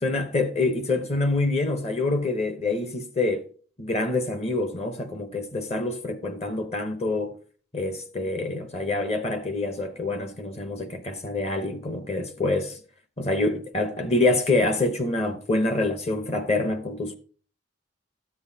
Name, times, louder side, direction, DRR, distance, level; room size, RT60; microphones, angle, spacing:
voice 1, 0.0-3.5 3.8-7.3 7.7-12.8 13.2-17.2, left 2 dB, 30° left, 0.8 m, -26 dB
13.0 x 7.9 x 2.8 m
head